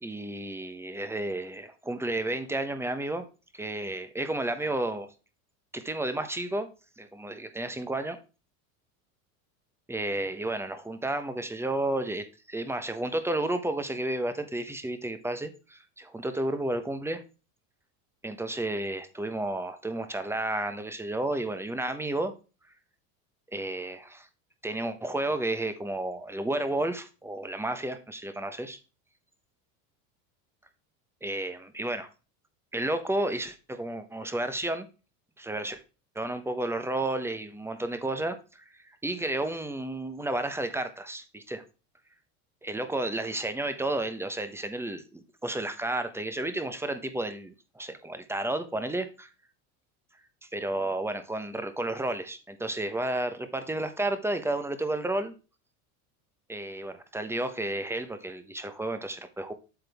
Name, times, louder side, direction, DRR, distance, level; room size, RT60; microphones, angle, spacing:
voice 1, 0.0-3.3 3.5-5.1 5.7-6.7 7.0-8.2 9.9-17.2 18.2-22.3 23.5-24.3 24.6-28.8 31.2-32.1 32.7-34.9 35.4-35.8 36.1-38.6 39.0-41.6 42.6-49.3 50.5-55.3 56.5-59.5, right 1 dB, 5° right, 0.8 m, -32 dB
8.0 x 6.7 x 3.4 m
supercardioid pair, 110°, 43 cm